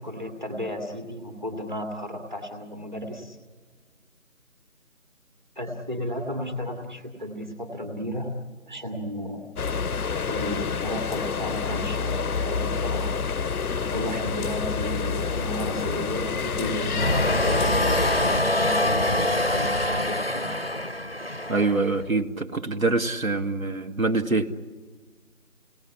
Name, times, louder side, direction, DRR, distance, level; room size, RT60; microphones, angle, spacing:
voice 1, 0.0-3.4 5.6-8.3 8.7-9.5 10.3-13.2 13.9-20.5, equal, 30° right, 3 dB, 2.2 m, -33 dB
sound 1, 9.6-18.4, left 5 dB, 80° left, 0.7 m, -28 dB
sound 2, 16.9-22.1, left 1 dB, 45° left, 0.7 m, -25 dB
voice 2, 21.5-24.5, right 3 dB, 70° right, 7 dB, 1.8 m, -25 dB
29.5 x 18.0 x 10.0 m, 1.5 s
figure-of-eight pair, 180°, 43 cm